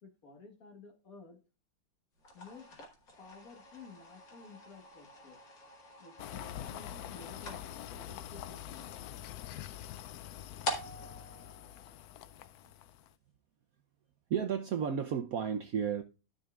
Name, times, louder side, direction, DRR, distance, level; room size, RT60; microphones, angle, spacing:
voice 1, 0.0-1.4 2.3-2.9 3.2-5.4 6.0-9.0, left 4 dB, 45° left, 1.8 m, -53 dB
sound 1, 2.2-12.6, equal, 65° left, 2.7 m, -46 dB
sound 2, 6.2-13.1, left 11 dB, 90° left, 0.8 m, -45 dB
voice 2, 14.3-16.0, right 7 dB, 70° right, 0.8 m, -32 dB
13.5 x 5.5 x 2.4 m
omnidirectional pair, 2.2 m